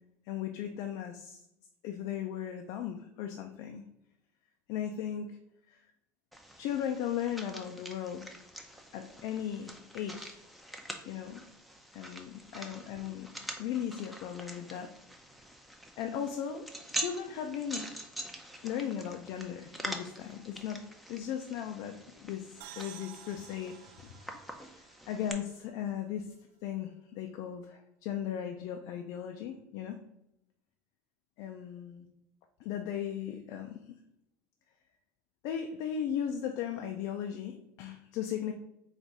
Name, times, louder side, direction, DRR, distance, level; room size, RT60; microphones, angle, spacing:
voice 1, 0.3-1.4 1.8-3.8 4.7-5.4 5.7-5.8 6.6-8.4 8.9-10.4 11.1-11.4 11.9-13.3 13.6-14.9 16.0-16.7 17.0-17.9 18.6-20.8 21.1-23.8 24.0-24.2 25.1-26.3 26.6-30.0 31.4-32.1 32.6-33.9 35.4-38.5, left 9 dB, 65° left, 5 dB, 0.4 m, -37 dB
sound 1, 6.3-25.3, right 1 dB, ahead, 0.5 m, -45 dB
sound 2, 22.6-26.2, right 12 dB, 80° right, 0.4 m, -52 dB
4.0 x 2.6 x 4.6 m, 0.80 s
cardioid pair, 130°, 7 cm